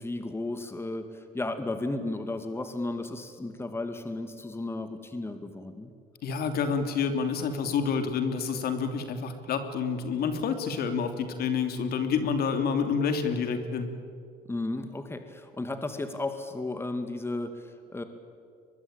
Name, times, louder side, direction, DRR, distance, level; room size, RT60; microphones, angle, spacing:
voice 1, 0.0-5.9 14.5-18.0, left 2 dB, 15° left, 8 dB, 2.3 m, -34 dB
voice 2, 6.2-13.9, left 6 dB, 65° left, 7 dB, 3.0 m, -28 dB
23.0 x 22.0 x 8.9 m, 2.3 s
cardioid pair, 110°, 17 cm